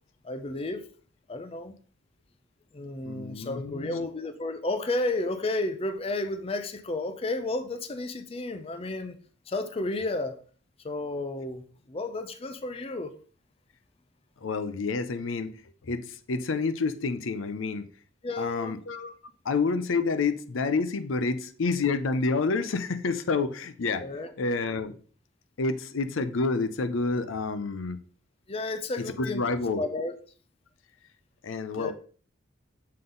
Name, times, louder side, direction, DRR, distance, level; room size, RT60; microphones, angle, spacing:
voice 1, 0.2-0.8 1.3-1.7 2.7-9.2 9.5-10.4 10.8-13.1 18.2-18.8 24.0-24.3 28.5-29.4 29.8-30.1 31.7-31.9, left 2 dB, 30° left, 0.5 m, -32 dB
voice 2, 3.0-4.1 14.4-15.5 15.8-17.9 18.3-19.2 19.4-24.0 24.4-24.9 25.6-28.0 29.0-29.9 31.4-31.9, left 4 dB, 80° left, 0.6 m, -29 dB
7.5 x 3.8 x 3.8 m
head